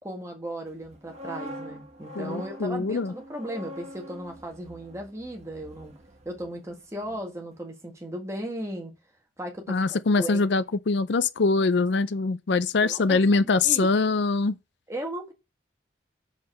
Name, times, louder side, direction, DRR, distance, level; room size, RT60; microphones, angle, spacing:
voice 1, 0.0-5.9 6.3-8.9 9.4-10.5 12.8-13.9 14.9-15.3, right 1 dB, 15° right, 1.8 m, -36 dB
sound 1, 0.8-6.8 7.0-7.3, equal, 35° right, 1.4 m, -44 dB
voice 2, 2.2-3.1 9.7-14.6, left 3 dB, 65° left, 0.5 m, -23 dB
6.5 x 5.1 x 6.7 m
head